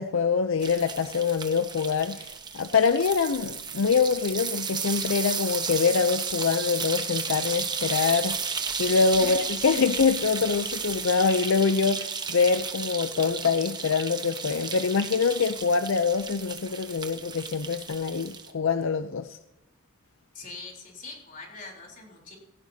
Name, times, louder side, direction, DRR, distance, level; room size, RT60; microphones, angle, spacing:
voice 1, 0.0-8.4 8.8-19.4, left 5 dB, 75° left, 10 dB, 0.5 m, -25 dB
sound 1, 0.6-18.5, right 5 dB, 20° right, 1.0 m, -33 dB
voice 2, 20.3-22.4, left 3 dB, 40° left, 0 dB, 3.7 m, -42 dB
16.5 x 16.5 x 2.8 m, 0.96 s
head